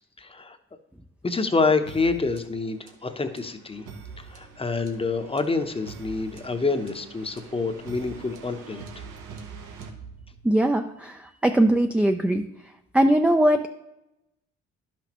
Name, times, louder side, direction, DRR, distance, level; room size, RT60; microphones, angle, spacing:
voice 1, 0.2-0.6 1.2-3.8 4.2-8.8, left 4 dB, 20° left, 8 dB, 0.8 m, -27 dB
sound 1, 1.9-10.7, right 5 dB, 90° right, 1.1 m, -44 dB
voice 2, 10.4-12.4 12.9-13.7, right 1 dB, 5° right, 6 dB, 0.4 m, -21 dB
11.0 x 6.0 x 3.0 m, 0.89 s
cardioid pair, 90°, 30 cm